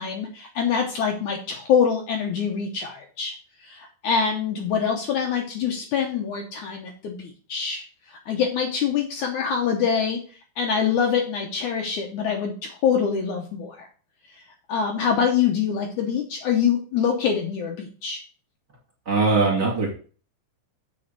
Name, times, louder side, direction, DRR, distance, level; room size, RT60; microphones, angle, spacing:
voice 1, 0.0-3.3 3.6-7.8 8.1-10.2 10.6-13.9 14.7-18.2, left 7 dB, 70° left, 2 dB, 2.0 m, -25 dB
voice 2, 19.1-19.9, right 3 dB, 30° right, -3 dB, 2.7 m, -20 dB
7.6 x 4.9 x 6.7 m, 0.40 s
omnidirectional pair, 4.2 m